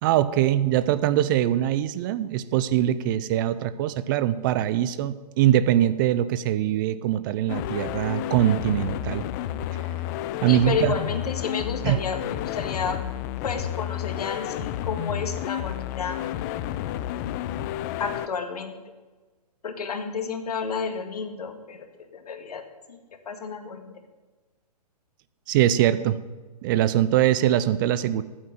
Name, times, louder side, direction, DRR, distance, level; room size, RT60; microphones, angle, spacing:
voice 1, 0.0-9.2 10.4-10.9 11.8-12.0 25.5-26.2 26.6-28.2, right 12 dB, 30° right, 15 dB, 0.5 m, -22 dB
sound 1, 7.5-18.3, left 12 dB, 25° left, 0.5 m, -31 dB
voice 2, 10.5-13.0 13.4-16.2 18.0-18.7 19.6-22.6 22.9-23.0 23.3-23.9, left 5 dB, 70° left, 7 dB, 2.0 m, -31 dB
9.0 x 8.6 x 9.2 m, 1.3 s
hypercardioid pair, 135°, 21 cm